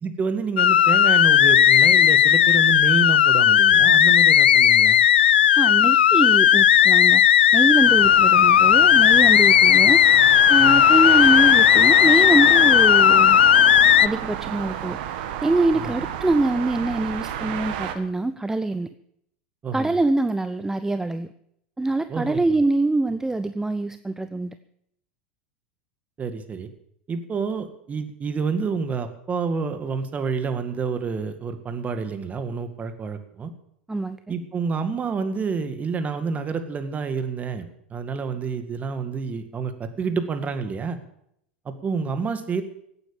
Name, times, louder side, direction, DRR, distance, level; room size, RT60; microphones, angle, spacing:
voice 1, 0.0-5.0 8.0-8.2 10.6-10.9 15.7-15.9 19.6-19.9 22.1-22.4 26.2-26.7 27.1-33.5 34.3-41.0 41.7-42.6, right 5 dB, 25° right, 9 dB, 2.0 m, -28 dB
sound 1, 0.6-14.1, left 10 dB, 85° left, 0.4 m, -15 dB
voice 2, 5.6-7.2 7.5-10.0 10.5-13.4 14.0-15.0 15.4-18.9 19.7-21.3 21.8-24.6 33.9-34.2, right 2 dB, 10° right, 12 dB, 0.6 m, -24 dB
sound 2, 7.8-18.0, right 10 dB, 65° right, 1.7 m, -31 dB
16.5 x 9.2 x 7.2 m, 0.73 s
hypercardioid pair, 90°, 5 cm